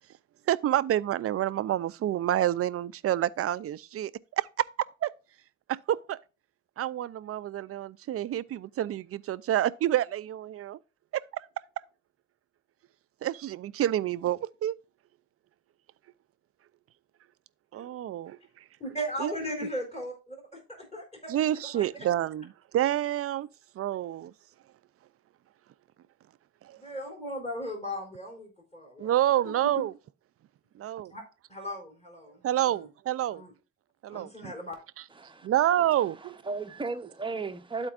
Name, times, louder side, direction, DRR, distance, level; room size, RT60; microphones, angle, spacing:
voice 1, 0.5-4.7 5.0-5.1 5.7-6.2 6.8-10.8 11.1-11.5 13.2-14.8 17.7-18.4 19.2-19.3 21.3-23.5 23.8-24.3 26.6-26.8 29.0-29.9 30.8-31.1 32.4-33.4 34.0-34.5 35.4-36.4, right 12 dB, 50° right, 0.4 m, -28 dB
voice 2, 18.8-21.5 21.7-21.8 26.7-29.1 29.4-29.5 31.1-31.2 31.5-32.4 32.7-32.9 33.3-33.5 34.1-34.7, equal, 20° left, 3.8 m, -37 dB
voice 3, 35.1-35.5 36.2-37.9, right 3 dB, 15° right, 0.8 m, -35 dB
12.5 x 4.4 x 2.4 m
cardioid pair, 90°, 30 cm